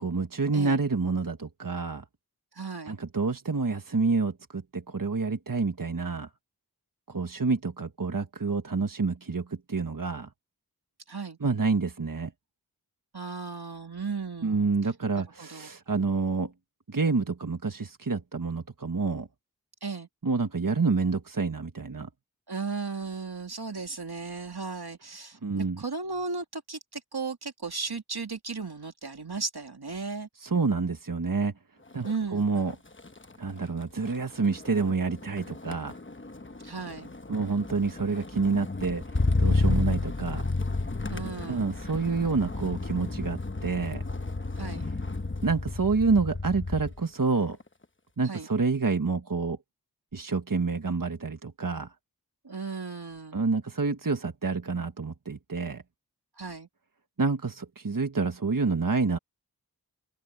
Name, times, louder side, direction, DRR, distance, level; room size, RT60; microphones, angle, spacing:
voice 1, 0.0-2.0 2.9-6.3 7.1-10.3 11.4-12.3 14.4-16.5 16.9-19.3 20.2-22.1 25.4-25.8 30.4-31.5 31.9-32.7 33.4-35.9 37.3-39.0 39.4-40.4 41.5-44.0 45.4-47.6 48.2-49.6 50.1-51.9 53.3-55.8 57.2-59.2, right 4 dB, 60° right, 1.3 m, -28 dB
voice 2, 2.6-2.9 11.1-11.4 13.1-14.7 15.2-15.7 19.8-20.1 22.5-30.3 32.0-32.7 36.6-37.1 41.1-41.7 44.6-44.8 48.2-48.5 52.4-53.4 56.4-56.7, right 4 dB, 85° right, 2.6 m, -36 dB
Motor vehicle (road), 31.9-32.2 32.6-47.0 47.4-47.8, left 3 dB, 30° left, 1.1 m, -31 dB
open air
wide cardioid pair, 45°, 38 cm